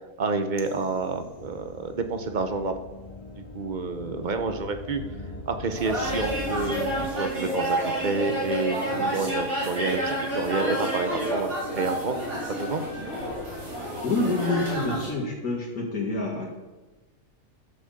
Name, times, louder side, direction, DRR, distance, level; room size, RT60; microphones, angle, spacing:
voice 1, 0.2-2.7 3.4-5.0 5.5-12.2 12.6-12.8, right 4 dB, 40° right, 7 dB, 0.9 m, -29 dB
sound 1, 0.6-7.1, left 2 dB, 35° left, 1.0 m, -41 dB
sound 2, 5.7-15.1, equal, 55° right, 4.5 m, -29 dB
voice 2, 14.0-16.5, left 2 dB, 80° left, -4 dB, 2.4 m, -27 dB
11.5 x 6.1 x 6.7 m, 1.2 s
omnidirectional pair, 1.5 m